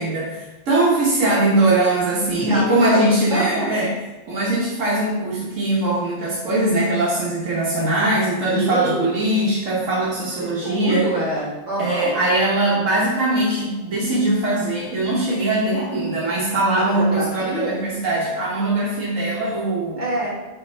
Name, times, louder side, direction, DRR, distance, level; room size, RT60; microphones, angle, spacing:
voice 1, 0.0-4.0 4.3-11.1 11.8-20.0, right 2 dB, 85° right, -6 dB, 1.5 m, -21 dB
voice 2, 2.5-3.0 3.3-3.7 8.5-9.1 10.6-12.2 16.8-17.8 20.0-20.3, right 1 dB, 65° right, -4 dB, 2.3 m, -25 dB
5.7 x 5.2 x 4.3 m, 1.1 s
omnidirectional pair, 1.3 m